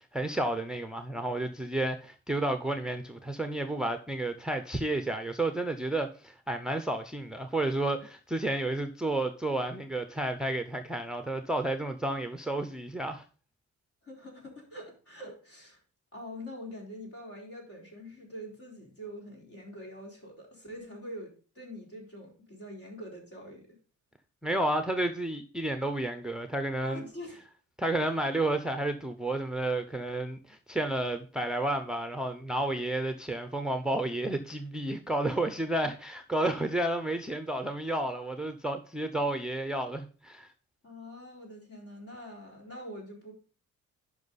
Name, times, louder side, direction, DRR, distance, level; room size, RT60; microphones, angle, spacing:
voice 1, 0.1-13.2 24.4-27.0 27.8-40.5, right 1 dB, ahead, 0.6 m, -31 dB
voice 2, 14.0-15.8 16.1-23.7 26.8-27.4 40.8-43.3, equal, 50° left, 4.1 m, -44 dB
10.5 x 5.5 x 4.0 m
cardioid pair, 130°, 29 cm